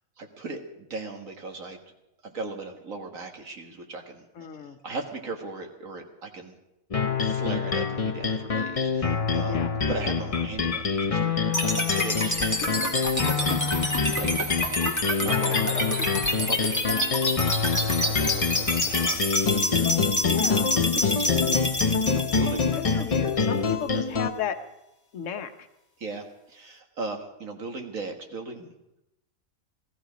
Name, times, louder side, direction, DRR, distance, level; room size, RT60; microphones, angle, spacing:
voice 1, 0.2-0.6 0.9-1.8 2.2-4.2 4.8-6.5 7.2-9.6 9.9-12.4 13.2-14.5 15.2-16.1 16.4-19.4 21.0-23.1 26.0-28.7, right 3 dB, 65° right, 4 dB, 2.0 m, -38 dB
voice 2, 4.3-4.8 9.4-9.8 12.7-12.9 20.3-20.7 22.7-24.6 25.1-25.5, left 7 dB, 60° left, 7 dB, 1.3 m, -34 dB
sound 1, 6.9-24.3, left 5 dB, 35° left, 0.6 m, -26 dB
sound 2, 11.5-23.6, left 1 dB, 10° left, 1.6 m, -28 dB
18.0 x 13.5 x 5.1 m, 0.89 s
omnidirectional pair, 1.5 m